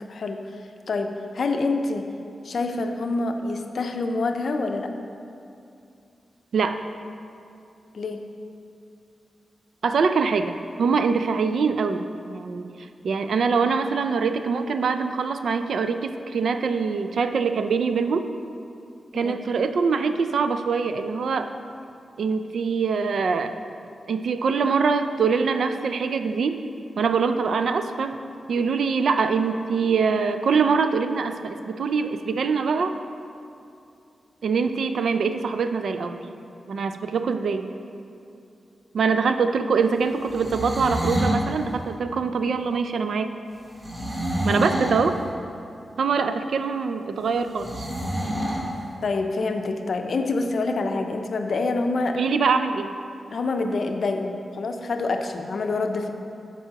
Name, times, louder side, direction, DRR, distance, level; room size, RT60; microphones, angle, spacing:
voice 1, 1.3-2.1 2.4-4.9 7.9-8.2 19.1-19.4 49.0-52.2 53.3-56.1, left 3 dB, 65° left, 5 dB, 0.5 m, -26 dB
voice 2, 9.8-12.7 13.0-18.3 19.1-21.5 22.2-23.6 24.1-26.6 27.0-28.2 28.5-32.9 34.4-36.3 36.7-37.7 38.9-43.3 44.4-45.2 46.0-47.9 52.2-52.9, right 5 dB, 80° right, 8 dB, 0.3 m, -24 dB
sound 1, 40.2-41.4 43.8-45.1 47.6-48.7, equal, 35° right, 1.3 m, -27 dB
12.5 x 4.7 x 2.9 m, 2.6 s
wide cardioid pair, 105°, 0 cm